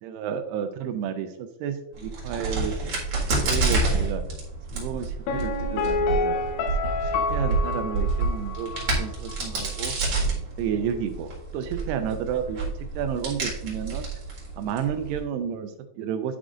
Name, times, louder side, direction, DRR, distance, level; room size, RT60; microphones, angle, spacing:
voice 1, 0.0-2.7 3.4-4.2 4.7-6.4 7.0-9.9 10.6-14.1 14.6-16.4, right 8 dB, 85° right, 8 dB, 2.4 m, -31 dB
Crack, 1.9-15.2, right 3 dB, 50° right, 2.1 m, -28 dB
Piano, 5.3-9.0 9.3-9.4, left 4 dB, 80° left, 2.5 m, -28 dB
11.0 x 4.9 x 2.5 m, 0.86 s
omnidirectional pair, 5.0 m